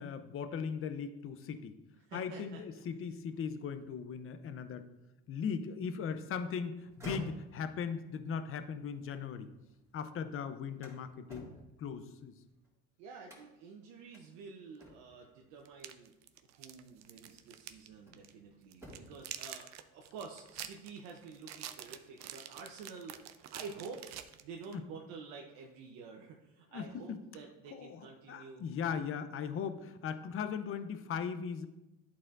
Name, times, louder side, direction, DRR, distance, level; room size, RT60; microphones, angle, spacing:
voice 1, 0.0-1.8 2.1-4.9 5.3-9.5 9.9-11.5 11.8-12.3 24.7-24.8 26.7-27.2 27.7-31.7, left 6 dB, 40° left, 10 dB, 0.6 m, -38 dB
voice 2, 2.0-2.6 13.0-16.1 16.5-28.7, right 5 dB, 85° right, 0 dB, 0.8 m, -49 dB
sound 1, 6.8-9.9 10.3-12.7 13.2-13.7 14.1-14.3 14.8-15.3 16.5-16.7 17.3-18.4 18.7-19.3, right 1 dB, 10° right, 2.2 m, -51 dB
sound 2, 14.8-14.9 15.6-17.9 18.1-18.3 18.7-24.8, right 11 dB, 55° right, 0.5 m, -47 dB
11.0 x 4.2 x 2.5 m, 0.97 s
supercardioid pair, 85°, 33 cm